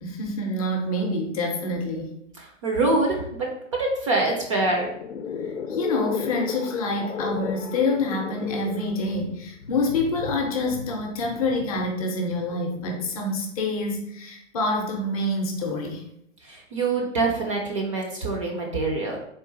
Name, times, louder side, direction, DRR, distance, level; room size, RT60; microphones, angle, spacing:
voice 1, 0.0-2.1 5.4-16.0, left 2 dB, 30° left, 2 dB, 0.6 m, -27 dB
voice 2, 2.4-3.5 3.8-4.9 16.4-19.2, right 2 dB, 25° right, 0 dB, 0.5 m, -25 dB
sound 1, 4.5-13.2, left 6 dB, 80° left, 0.6 m, -35 dB
3.7 x 2.4 x 3.9 m, 0.73 s
hypercardioid pair, 130°, 37 cm